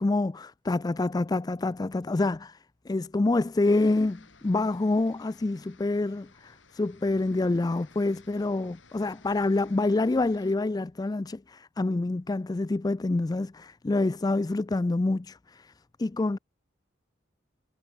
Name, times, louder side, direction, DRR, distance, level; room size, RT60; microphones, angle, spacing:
voice 1, 0.0-15.7 16.0-16.4, left 2 dB, 20° left, 0.4 m, -27 dB
sound 1, 3.6-10.6, left 4 dB, 90° left, 7.7 m, -56 dB
head